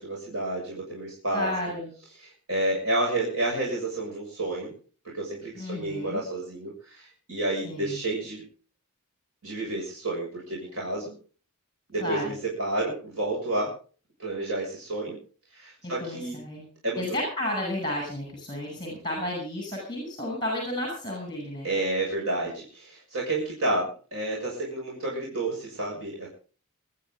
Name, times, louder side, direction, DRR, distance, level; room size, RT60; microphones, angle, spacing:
voice 1, 0.0-1.5 2.2-4.7 5.1-8.4 9.4-11.2 11.9-13.7 14.2-15.2 15.5-16.4 16.8-17.0 21.6-26.3, right 2 dB, 70° right, -3 dB, 6.9 m, -30 dB
voice 2, 1.3-1.9 5.5-6.2 7.6-8.0 12.0-12.3 15.8-16.6 17.0-21.7, left 1 dB, 20° left, 0 dB, 7.9 m, -32 dB
22.5 x 14.0 x 3.9 m, 0.40 s
head